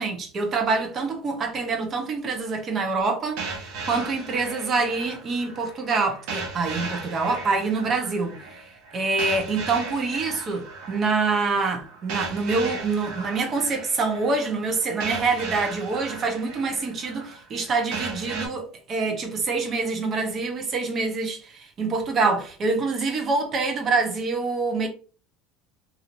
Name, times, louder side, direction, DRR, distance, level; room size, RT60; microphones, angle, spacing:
voice 1, 0.0-8.6 8.9-24.9, right 4 dB, 35° right, 0.9 m, -26 dB
sound 1, 3.4-18.5, right 4 dB, 70° right, 1.0 m, -36 dB
3.0 x 2.8 x 2.6 m
supercardioid pair, 120°, 0 cm